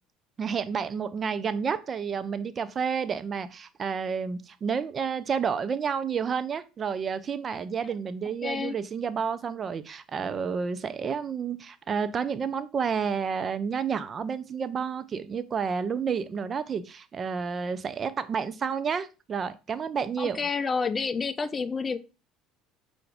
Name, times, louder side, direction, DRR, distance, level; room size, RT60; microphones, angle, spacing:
voice 1, 0.4-20.4, right 6 dB, 35° right, 0.4 m, -30 dB
voice 2, 8.4-8.8 20.2-22.0, left 5 dB, 30° left, 0.4 m, -29 dB
5.7 x 2.6 x 3.3 m
supercardioid pair, 95°, 0 cm